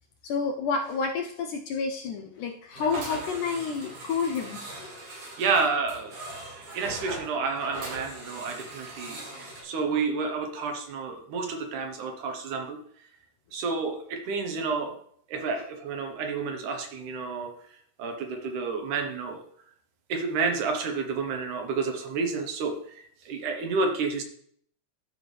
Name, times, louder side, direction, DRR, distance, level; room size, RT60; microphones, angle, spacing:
voice 1, 0.2-4.6 15.6-15.7, left 5 dB, 75° left, 4 dB, 1.9 m, -29 dB
sound 1, 2.7-9.6, right 1 dB, 85° right, 6.5 m, -40 dB
voice 2, 5.0-6.1 6.4-12.8 13.5-15.0 15.3-17.5 18.0-19.4 20.1-24.2, right 4 dB, 65° right, 4 dB, 2.5 m, -30 dB
14.0 x 6.1 x 3.4 m, 0.64 s
omnidirectional pair, 4.1 m